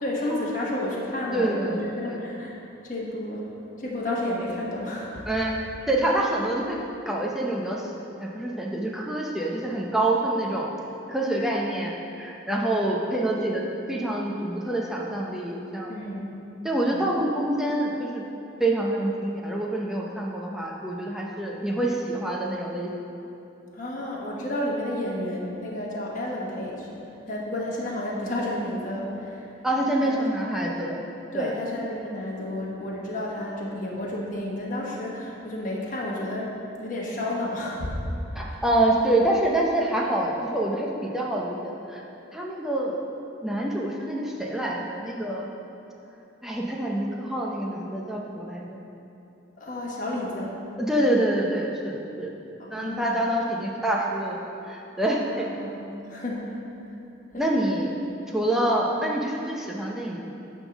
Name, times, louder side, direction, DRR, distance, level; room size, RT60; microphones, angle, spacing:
voice 1, 0.0-2.6 2.8-3.5 3.8-5.3 15.9-16.3 16.9-17.1 23.7-26.9 27.3-29.5 30.0-30.2 31.3-38.0 38.4-38.6 49.6-50.5 52.6-53.2 55.2-56.5 56.9-57.0 57.3-57.5, left 1 dB, 40° left, -4 dB, 1.3 m, -31 dB
voice 2, 1.3-2.2 5.3-5.5 5.9-6.8 7.1-7.9 8.2-10.7 11.1-16.0 16.6-18.2 18.6-22.9 29.6-31.0 31.3-31.5 38.3-42.0 42.3-43.0 43.4-45.5 46.4-48.8 50.8-52.3 52.7-54.4 54.6-55.5 57.4-57.9 58.3-60.2, right 1 dB, ahead, -3 dB, 0.6 m, -26 dB
10.5 x 3.7 x 6.1 m, 2.8 s
head